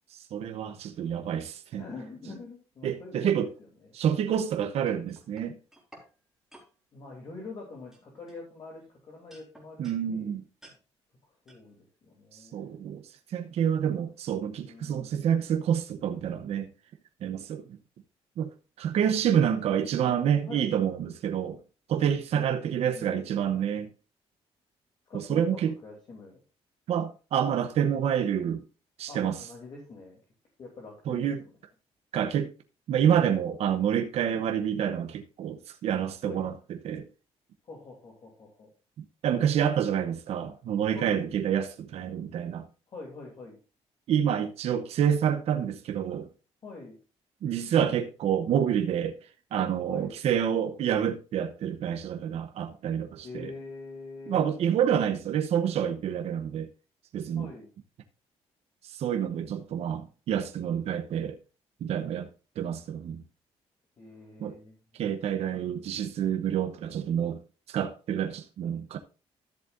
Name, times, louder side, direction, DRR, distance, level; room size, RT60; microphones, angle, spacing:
voice 1, 0.1-1.8 2.8-3.5 3.9-5.6 9.8-10.4 12.3-13.0 13.3-16.7 17.2-17.6 18.4-18.5 18.8-21.6 21.9-23.9 25.3-25.7 26.9-28.6 29.0-29.4 31.1-31.4 32.1-32.5 32.9-37.1 39.2-42.7 44.1-46.3 47.4-49.2 49.5-53.5 54.3-56.7 57.1-57.5 58.8-61.4 61.8-62.3 62.6-63.2 64.4-64.6 65.0-67.4 67.7-69.0, right 9 dB, 65° right, 0.9 m, -28 dB
voice 2, 1.8-3.9 6.9-10.4 11.3-12.8 14.6-15.4 19.0-19.1 19.6-19.7 20.0-20.7 22.3-23.3 25.0-26.4 29.1-30.2 30.6-31.6 34.3-34.5 36.2-36.5 37.6-38.7 40.9-41.2 42.9-43.6 46.6-47.0 49.9-50.1 53.2-54.4 57.3-57.7 64.0-64.8 65.1-65.5, left 3 dB, 45° left, 3.0 m, -45 dB
sound 1, 4.9-6.1 6.5-6.7 7.4-7.6 7.9-8.9 9.3-10.0 10.6-10.8 11.5-11.6, right 1 dB, 5° right, 3.6 m, -54 dB
13.5 x 7.4 x 2.6 m
cardioid pair, 135°, 11 cm